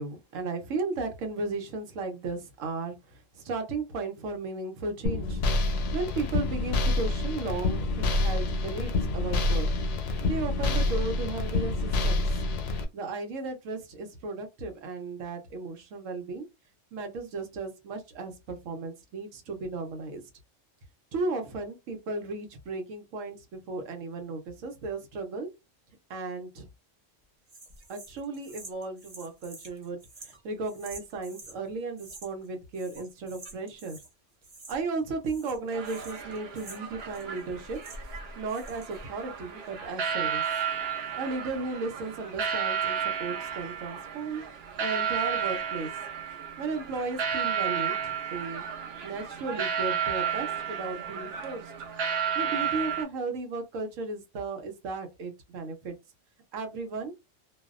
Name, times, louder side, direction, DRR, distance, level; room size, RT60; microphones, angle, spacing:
voice 1, 0.0-5.4 5.9-9.7 10.0-12.3 12.9-16.5 16.9-20.2 21.1-25.5 26.1-26.7 27.9-34.0 34.7-37.8 38.4-40.4 41.2-44.4 44.8-45.9 46.6-48.6 49.0-51.7 52.3-56.0 56.5-57.1, right 3 dB, 85° right, 1.1 m, -35 dB
sound 1, 5.0-12.8, left 2 dB, 75° left, 0.9 m, -27 dB
sound 2, 27.5-31.6 32.0-32.5 32.7-34.1 34.4-35.0 35.2-38.2 38.5-39.0, right 3 dB, 35° right, 0.7 m, -49 dB
sound 3, 35.7-53.0, right 7 dB, 60° right, 0.8 m, -32 dB
2.6 x 2.1 x 2.3 m
omnidirectional pair, 1.3 m